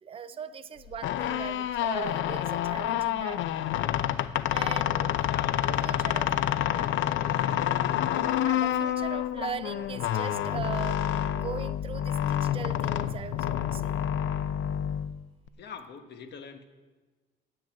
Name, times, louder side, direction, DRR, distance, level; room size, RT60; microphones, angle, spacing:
voice 1, 0.0-3.4 4.5-5.3 5.8-6.3 6.7-6.9 8.4-14.0, right 7 dB, 30° right, 11 dB, 0.5 m, -39 dB
sound 1, 0.9-15.5, left 11 dB, 90° left, 0.6 m, -28 dB
voice 2, 5.2-5.9 6.5-7.1 8.1-9.2 15.6-16.7, left 6 dB, 65° left, 7 dB, 1.2 m, -46 dB
10.5 x 7.9 x 9.0 m, 1.3 s
cardioid pair, 135°, 19 cm